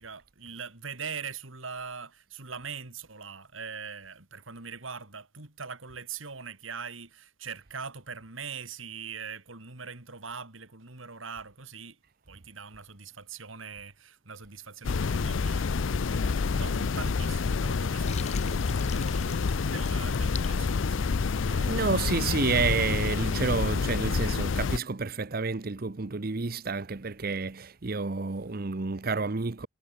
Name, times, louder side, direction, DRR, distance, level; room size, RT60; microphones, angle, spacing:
voice 1, 0.0-12.0 12.3-21.1 21.4-22.1, right 5 dB, 85° right, 2.9 m, -42 dB
sound 1, 14.8-24.8, left 4 dB, 75° left, 0.5 m, -28 dB
Water, 18.0-21.5, left 7 dB, 35° left, 2.6 m, -44 dB
voice 2, 21.6-29.7, right 4 dB, 50° right, 0.8 m, -30 dB
head